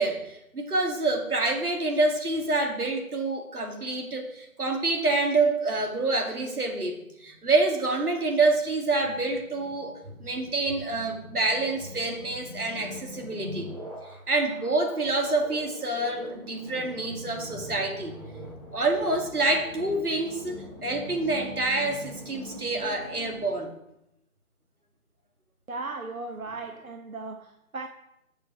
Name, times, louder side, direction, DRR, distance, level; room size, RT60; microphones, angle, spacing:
voice 1, 0.0-13.7 14.3-18.2 18.7-23.7, right 2 dB, 90° right, 3 dB, 2.3 m, -27 dB
sound 1, 7.1-23.5, left 1 dB, 25° right, 1.1 m, -43 dB
voice 2, 25.7-27.9, right 3 dB, 70° right, 5 dB, 1.0 m, -37 dB
7.3 x 6.9 x 6.0 m, 0.83 s
figure-of-eight pair, 175°, 44 cm